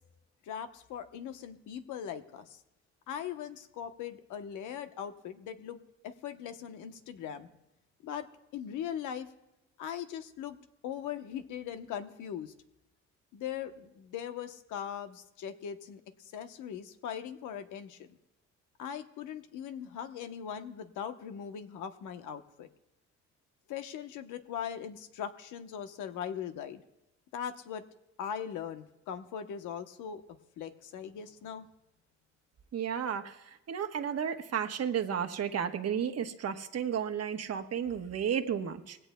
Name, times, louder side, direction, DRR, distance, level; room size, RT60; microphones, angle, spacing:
voice 1, 0.5-2.6 3.1-7.5 8.0-8.3 8.5-9.3 9.8-10.6 10.8-12.5 13.3-18.2 18.8-22.7 23.7-26.8 27.3-27.8 28.2-30.2 30.6-31.7, left 8 dB, 90° left, 8 dB, 1.0 m, -40 dB
voice 2, 32.7-39.0, right 8 dB, 55° right, 7 dB, 1.2 m, -33 dB
20.5 x 16.5 x 2.2 m, 0.92 s
cardioid pair, 90°, 30 cm